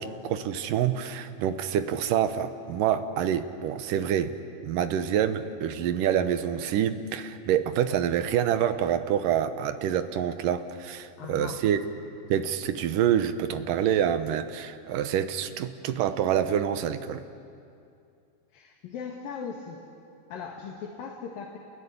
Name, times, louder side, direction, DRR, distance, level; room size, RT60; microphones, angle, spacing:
voice 1, 0.0-4.4 4.6-11.8 12.3-17.2, right 9 dB, 80° right, 10 dB, 2.6 m, -27 dB
voice 2, 11.2-11.7 18.5-19.9 20.3-21.6, left 6 dB, 85° left, 0 dB, 3.6 m, -39 dB
29.0 x 20.5 x 10.0 m, 2.5 s
omnidirectional pair, 3.9 m